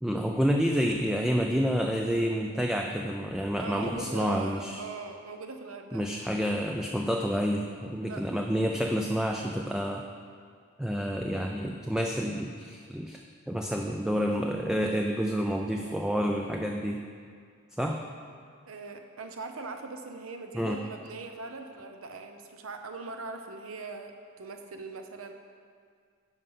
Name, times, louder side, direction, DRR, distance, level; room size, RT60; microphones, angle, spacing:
voice 1, 0.0-4.8 5.9-10.1 10.8-13.2 13.5-17.0 17.8-18.0 20.5-20.8, equal, 5° right, 2 dB, 0.3 m, -29 dB
voice 2, 3.6-6.1 8.0-8.3 18.7-25.3, right 3 dB, 75° right, 5 dB, 0.8 m, -41 dB
10.5 x 5.4 x 5.7 m, 2.1 s
head